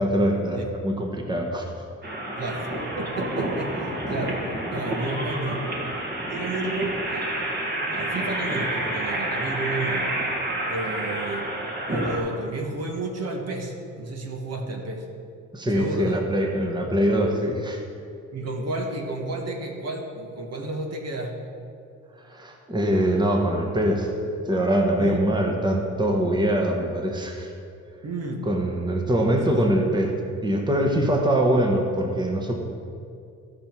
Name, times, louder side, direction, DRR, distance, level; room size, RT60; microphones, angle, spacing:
voice 1, 0.0-1.6 15.5-17.8 22.2-27.5 28.5-30.1 30.4-32.5, right 1 dB, 15° right, 2 dB, 1.2 m, -23 dB
sound 1, 2.0-12.2, right 1 dB, 35° right, 2.0 m, -29 dB
voice 2, 2.4-5.6 6.3-7.3 7.9-10.1 10.7-11.5 11.9-15.1 15.7-16.2 18.3-21.4 25.0-25.2 28.0-28.4 29.6-29.7, right 2 dB, 55° right, 2 dB, 1.5 m, -31 dB
15.5 x 5.6 x 4.6 m, 2.5 s
cardioid pair, 90°, 30 cm